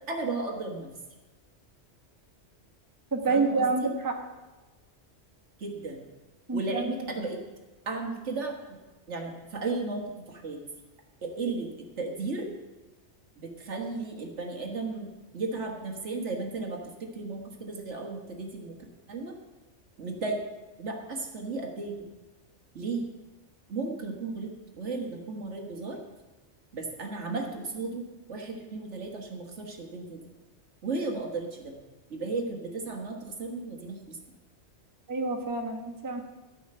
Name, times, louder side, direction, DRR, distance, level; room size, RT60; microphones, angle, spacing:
voice 1, 0.1-0.9 3.3-3.9 5.6-6.0 6.5-7.4 7.9-8.8 9.1-10.6 11.2-12.5 13.4-18.8 19.1-19.3 20.0-20.4 20.8-22.1 22.8-23.1 23.7-26.0 26.7-30.2 30.8-31.7 32.1-34.2, right 3 dB, 75° right, 1 dB, 1.8 m, -35 dB
voice 2, 3.1-4.2 6.5-7.0 35.1-36.2, right 3 dB, 20° right, 2 dB, 1.1 m, -28 dB
13.0 x 5.6 x 6.7 m, 1.2 s
omnidirectional pair, 1.2 m